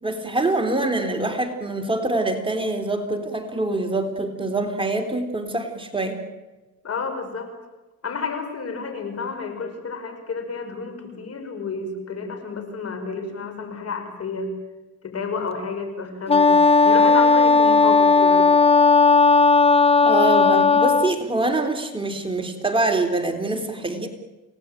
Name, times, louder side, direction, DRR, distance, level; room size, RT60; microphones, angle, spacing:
voice 1, 0.0-6.2 20.0-24.1, right 2 dB, 15° right, 4 dB, 3.5 m, -25 dB
voice 2, 6.8-7.5 8.0-14.5 15.0-16.6 16.8-18.5, left 4 dB, 55° left, 7 dB, 5.9 m, -30 dB
Wind instrument woodwind instrument, 16.3-21.2, left 4 dB, 20° left, 0.9 m, -15 dB
28.5 x 18.5 x 9.1 m, 1.1 s
cardioid pair, 90°, 30 cm